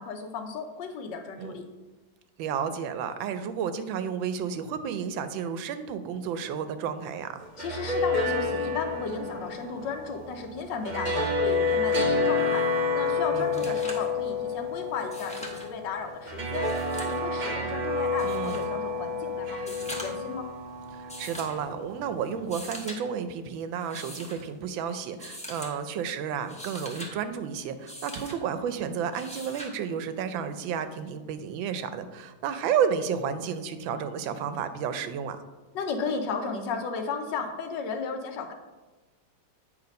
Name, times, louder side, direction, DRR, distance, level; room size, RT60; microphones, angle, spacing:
voice 1, 0.0-1.6 7.6-12.7 12.9-16.7 17.0-20.5 35.7-38.5, left 5 dB, 75° left, 6 dB, 1.4 m, -34 dB
voice 2, 2.4-7.4 13.3-13.8 18.2-18.8 20.9-35.4, right 7 dB, 90° right, 10 dB, 1.4 m, -32 dB
sound 1, 7.4-22.6, left 3 dB, 75° right, 0.4 m, -29 dB
sound 2, 13.0-13.1 13.4-14.1 15.0-15.7 16.5-17.2 18.2-18.7 19.6-20.3 21.1-21.6 22.4-23.0 23.8-24.4 25.2-25.7 26.3-27.1 27.9-28.4 29.1-29.7 31.2-31.3, equal, 5° left, 0.5 m, -41 dB
8.7 x 3.2 x 5.2 m, 1.2 s
omnidirectional pair, 2.1 m